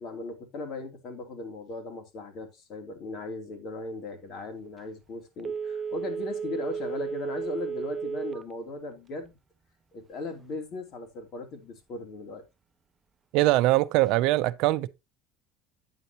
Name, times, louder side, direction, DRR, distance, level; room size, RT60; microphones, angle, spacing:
voice 1, 0.0-9.3 9.9-12.4, left 2 dB, 50° left, 2.9 m, -38 dB
Telephone, 5.4-8.5 8.9-9.0, right 6 dB, 25° right, 0.6 m, -33 dB
voice 2, 13.3-14.9, right 17 dB, 70° right, 0.6 m, -22 dB
9.5 x 7.9 x 2.9 m
supercardioid pair, 110°, 0 cm